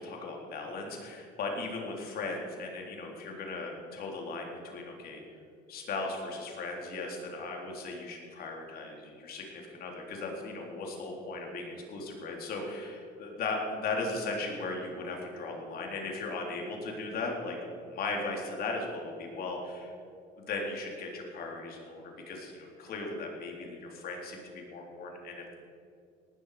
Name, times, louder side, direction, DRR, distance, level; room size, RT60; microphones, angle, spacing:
voice 1, 0.0-5.2 5.7-19.9 20.4-25.5, left 3 dB, 65° left, 0 dB, 3.7 m, -37 dB
18.5 x 12.5 x 5.0 m, 2.5 s
cardioid pair, 110°, 17 cm